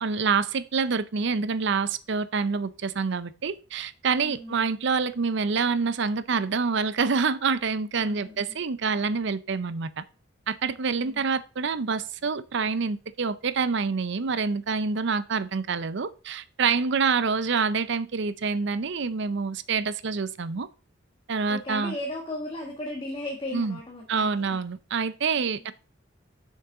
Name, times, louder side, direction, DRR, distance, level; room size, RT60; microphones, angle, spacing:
voice 1, 0.0-10.0 10.5-20.7 21.3-21.9 23.5-23.8 24.1-25.7, right 5 dB, 65° right, 0.6 m, -27 dB
voice 2, 4.2-4.7 8.0-8.6 11.0-11.2 21.5-24.6 25.3-25.5, left 1 dB, 25° left, 1.4 m, -36 dB
7.1 x 6.6 x 3.8 m
head